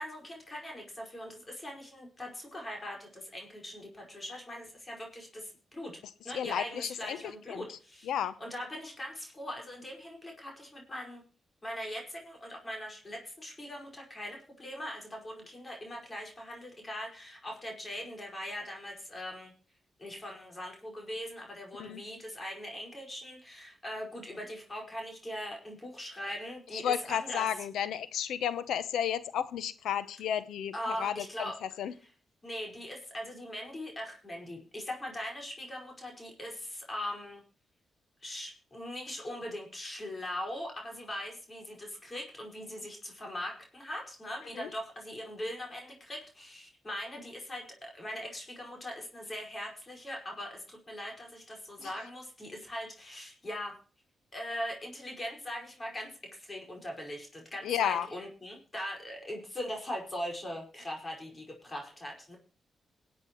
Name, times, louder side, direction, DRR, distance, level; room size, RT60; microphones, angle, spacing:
voice 1, 0.0-6.0 6.2-8.1 8.4-11.2 11.6-19.5 20.0-27.5 30.7-31.6 32.4-37.4 38.2-53.7 54.3-62.4, left 1 dB, 30° left, 0 dB, 5.1 m, -41 dB
voice 2, 6.3-7.8 8.0-8.4 21.8-22.0 26.7-31.9 44.5-44.7 51.8-51.9 57.6-58.1, left 9 dB, 85° left, 15 dB, 0.8 m, -33 dB
21.5 x 8.4 x 3.1 m, 0.38 s
cardioid pair, 65°, 0 cm